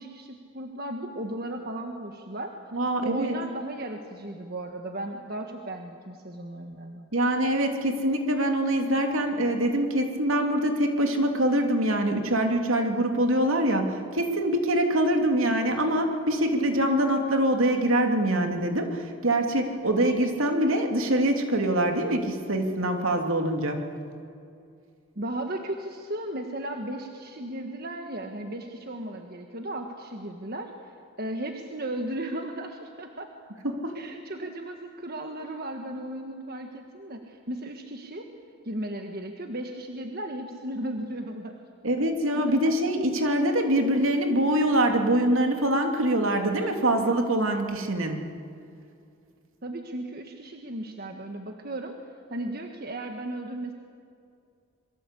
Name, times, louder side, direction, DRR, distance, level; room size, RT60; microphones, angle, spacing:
voice 1, 0.0-2.5 3.0-7.1 25.1-33.3 33.9-38.3 38.6-41.5 42.3-42.8 49.6-51.9 52.3-53.7, right 1 dB, 45° right, 4 dB, 1.6 m, -35 dB
voice 2, 2.7-3.3 7.1-23.8 33.6-34.0 41.8-48.2, right 1 dB, 70° right, 4 dB, 3.0 m, -24 dB
27.0 x 23.0 x 8.4 m, 2.4 s
head